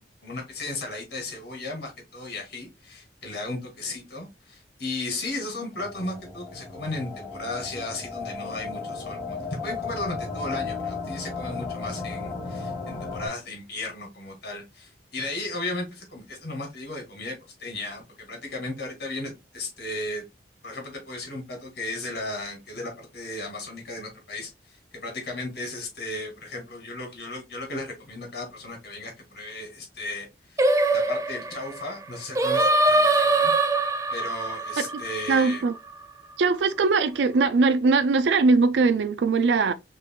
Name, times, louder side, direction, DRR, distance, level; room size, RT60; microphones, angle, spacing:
voice 1, 0.2-20.2 20.6-30.6 30.9-33.5 34.1-35.6, left 2 dB, 60° left, 2.3 m, -35 dB
sound 1, 5.7-13.3, left 4 dB, 25° left, 2.2 m, -35 dB
Singing, 30.6-35.9, right 2 dB, 20° right, 0.5 m, -23 dB
voice 2, 35.3-35.7 36.4-39.7, right 4 dB, 75° right, 0.4 m, -21 dB
5.4 x 3.3 x 2.3 m
head